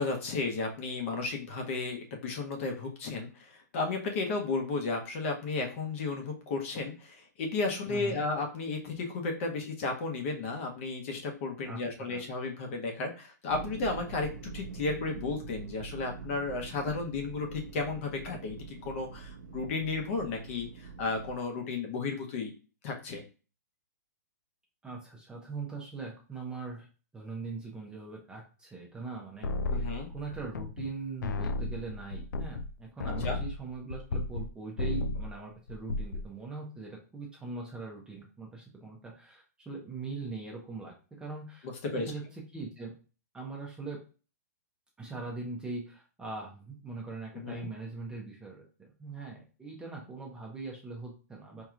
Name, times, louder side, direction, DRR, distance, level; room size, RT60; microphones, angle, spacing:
voice 1, 0.0-22.5 22.8-23.2 29.7-30.1 33.2-33.4 41.6-42.0 47.3-47.6, left 3 dB, 45° left, 2 dB, 0.9 m, -33 dB
voice 2, 7.9-8.2 11.7-12.2 24.8-26.9 27.1-29.5 29.8-42.9 43.3-44.0 45.0-51.6, right 3 dB, 10° right, -1 dB, 0.6 m, -41 dB
sound 1, 13.5-21.4, right 6 dB, 75° right, 0.6 m, -44 dB
sound 2, 29.4-30.9 31.2-34.5 34.8-35.3 35.7-36.3, left 2 dB, 80° left, 0.4 m, -33 dB
4.5 x 2.9 x 2.4 m, 0.35 s
hypercardioid pair, 150°, 10 cm